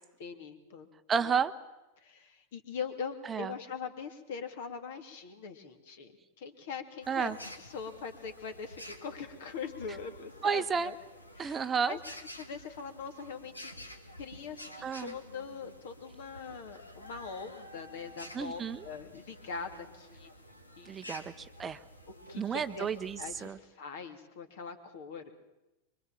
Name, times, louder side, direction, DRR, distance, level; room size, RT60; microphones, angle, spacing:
voice 1, 0.2-0.9 1.2-1.3 2.0-6.1 6.4-7.3 7.6-11.0 11.4-12.0 12.4-13.9 14.2-20.3 20.8-20.9 22.3-22.9 23.2-25.3, left 6 dB, 55° left, 7 dB, 2.6 m, -42 dB
voice 2, 1.1-1.5 3.3-3.5 7.1-7.4 10.4-10.9 11.4-12.0 14.8-15.1 18.3-18.9 20.8-21.8 22.4-23.6, right 6 dB, 20° right, 12 dB, 0.9 m, -31 dB
sound 1, 7.0-23.5, equal, 85° left, 2.1 m, -50 dB
25.0 x 24.0 x 7.4 m, 0.99 s
figure-of-eight pair, 90°, 0 cm